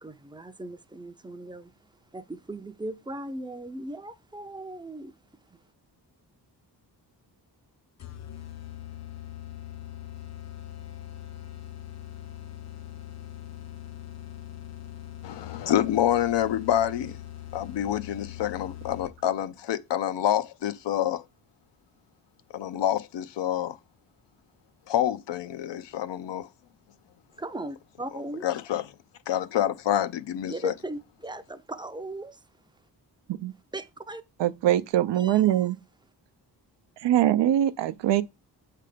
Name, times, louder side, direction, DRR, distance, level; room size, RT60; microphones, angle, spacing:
voice 1, 0.0-1.7 2.1-5.1 27.4-28.5 30.5-32.4 33.7-34.2 35.2-35.6, right 1 dB, 10° right, 0.4 m, -38 dB
sound 1, 8.0-19.4, left 12 dB, 40° left, 0.5 m, -42 dB
voice 2, 15.2-17.2 17.5-21.2 22.5-23.8 24.9-26.5 28.1-28.9 29.3-30.7, left 11 dB, 80° left, 0.6 m, -27 dB
voice 3, 34.4-35.8 37.0-38.2, right 12 dB, 85° right, 0.6 m, -22 dB
7.6 x 3.3 x 5.0 m
wide cardioid pair, 125°, 42 cm